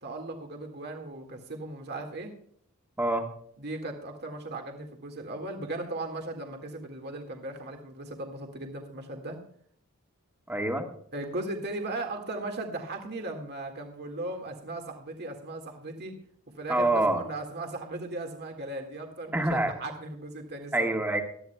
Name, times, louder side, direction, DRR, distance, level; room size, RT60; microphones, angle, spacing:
voice 1, 0.0-2.3 3.6-9.4 11.1-16.2 16.6-20.9, right 2 dB, 50° right, 3 dB, 1.9 m, -37 dB
voice 2, 3.0-3.3 10.5-10.9 16.7-17.2 19.3-19.7 20.7-21.2, right 1 dB, 10° right, 3 dB, 1.7 m, -26 dB
19.0 x 13.0 x 2.3 m, 0.62 s
head